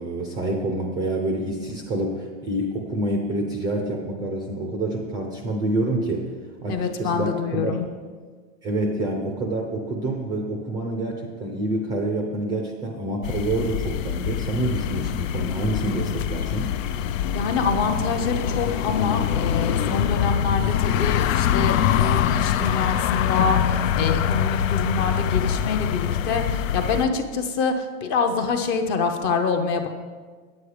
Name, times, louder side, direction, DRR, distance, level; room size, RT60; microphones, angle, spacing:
voice 1, 0.0-6.3 6.6-7.8 8.6-16.8, right 2 dB, 10° right, 1 dB, 0.4 m, -27 dB
voice 2, 6.7-7.9 17.3-29.9, left 5 dB, 30° left, 6 dB, 0.6 m, -26 dB
sound 1, 13.2-27.1, left 9 dB, 85° left, 0.6 m, -24 dB
9.4 x 8.4 x 4.9 m, 1.5 s
supercardioid pair, 165°, 38 cm